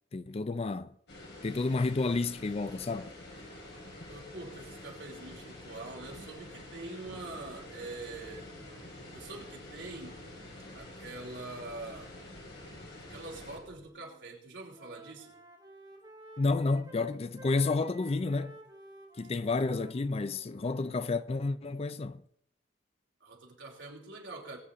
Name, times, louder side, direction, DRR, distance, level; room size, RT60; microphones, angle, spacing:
voice 1, 0.1-1.0 1.4-3.1 16.4-18.6 19.2-22.2, left 3 dB, 35° left, 0.4 m, -30 dB
sound 1, 1.1-13.6, left 1 dB, 65° left, 4.4 m, -48 dB
sound 2, 3.3-6.4 7.1-13.9, right 1 dB, 45° right, 1.2 m, -59 dB
voice 2, 4.1-8.5 9.1-10.2 10.7-12.1 13.1-15.4 23.2-24.6, right 2 dB, 75° right, 3.0 m, -44 dB
Wind instrument woodwind instrument, 13.9-14.3 14.6-21.1, right 1 dB, 25° right, 2.2 m, -53 dB
21.5 x 8.2 x 3.7 m
head